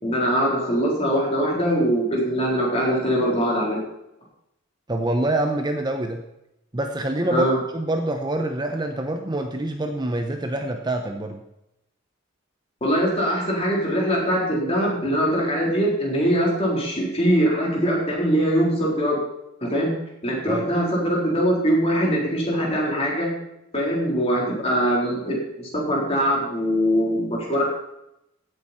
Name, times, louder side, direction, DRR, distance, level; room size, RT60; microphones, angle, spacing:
voice 1, 0.0-3.8 7.3-7.6 12.8-19.2 19.6-19.9 20.2-23.3 23.7-27.6, equal, 30° left, -3 dB, 3.9 m, -22 dB
voice 2, 4.9-6.2 6.7-7.5 7.7-11.4 20.5-20.7, right 1 dB, 20° right, 5 dB, 0.8 m, -25 dB
16.0 x 8.2 x 4.4 m, 0.86 s
head